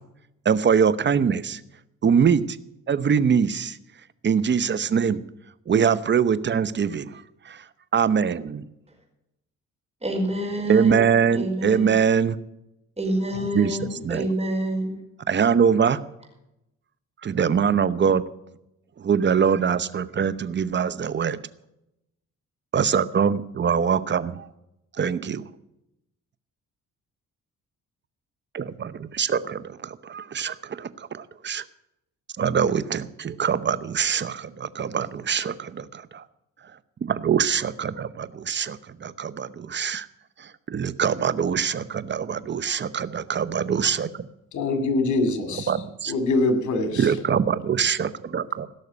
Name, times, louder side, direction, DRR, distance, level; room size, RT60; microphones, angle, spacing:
voice 1, 0.4-1.6 2.0-2.6 2.9-3.8 4.2-5.2 5.7-7.6 7.9-8.6 10.7-12.4 13.5-13.8 14.0-14.3 15.3-16.0 17.2-18.2 19.0-21.4 22.7-24.5 25.0-25.4 28.5-31.6 32.4-36.2 37.0-40.1 40.4-44.3 45.5-46.1 46.9-48.7, right 7 dB, 35° right, 15 dB, 0.9 m, -23 dB
voice 2, 10.0-11.0 11.3-12.0 13.0-14.9, right 1 dB, 20° right, 2 dB, 5.0 m, -27 dB
voice 3, 44.5-45.7 46.1-47.1, left 2 dB, 70° left, 8 dB, 2.6 m, -23 dB
17.0 x 6.5 x 9.7 m, 0.87 s
cardioid pair, 90°, 30 cm